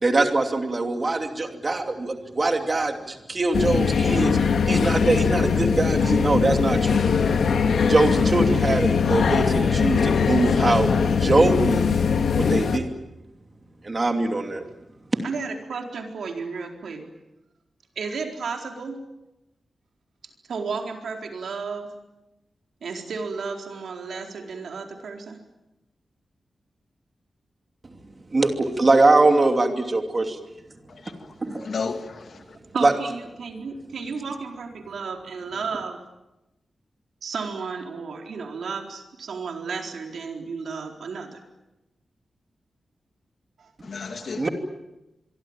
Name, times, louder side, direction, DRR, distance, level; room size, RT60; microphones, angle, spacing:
voice 1, 0.0-4.4 4.7-7.0 7.9-10.9 11.2-11.9 12.4-12.9 13.8-14.6 28.3-30.4 31.4-31.7 32.8-32.9 44.4-44.5, right 2 dB, 30° right, 2.8 m, -22 dB
sound 1, 3.5-12.8, left 6 dB, 85° left, 2.2 m, -21 dB
voice 2, 15.2-17.1 18.0-19.0 20.5-21.9 22.8-25.4 32.7-36.0 37.2-41.4 43.6-43.7 44.1-44.2, right 5 dB, 80° right, 4.3 m, -33 dB
voice 3, 30.9-32.6 43.8-44.5, left 5 dB, 55° left, 2.4 m, -34 dB
26.0 x 23.0 x 8.9 m
wide cardioid pair, 160°, 0 cm